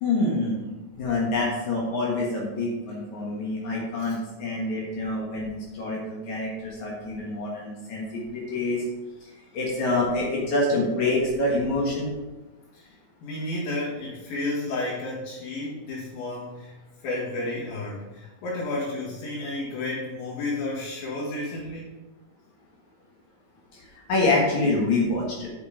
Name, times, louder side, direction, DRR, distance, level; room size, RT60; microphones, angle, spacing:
voice 1, 0.0-8.8 9.5-12.1 23.7-25.5, left 2 dB, 60° left, -3 dB, 2.5 m, -26 dB
voice 2, 12.7-16.7 17.0-21.9, left 2 dB, 80° left, -9 dB, 3.6 m, -32 dB
8.1 x 5.4 x 4.9 m, 1.1 s
omnidirectional pair, 4.2 m